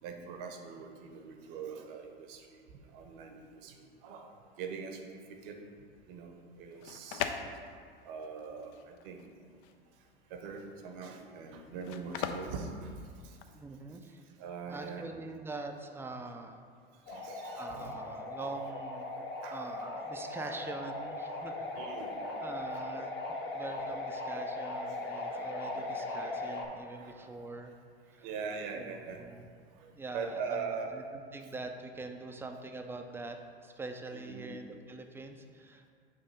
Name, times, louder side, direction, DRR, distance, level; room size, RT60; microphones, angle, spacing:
voice 1, 0.0-5.6 6.1-7.5 8.0-9.3 10.0-13.4 14.2-15.1 16.9-18.0 19.4-19.6 20.4-20.6 21.8-22.2 25.7-25.8 26.9-27.3 28.1-29.4 29.7-30.9 31.4-31.5 34.1-34.5, right 5 dB, 60° right, 4 dB, 0.9 m, -43 dB
sound 1, 6.6-13.6, left 8 dB, 60° left, 0.5 m, -41 dB
voice 2, 13.5-14.2 14.7-16.6 17.6-21.7 22.2-27.7 28.1-28.3 28.7-29.5 29.9-35.9, right 3 dB, 10° right, 4 dB, 0.4 m, -44 dB
sound 2, 17.1-26.7, left 2 dB, 35° left, 0.9 m, -39 dB
6.6 x 2.7 x 5.3 m, 2.2 s
hypercardioid pair, 90°, 31 cm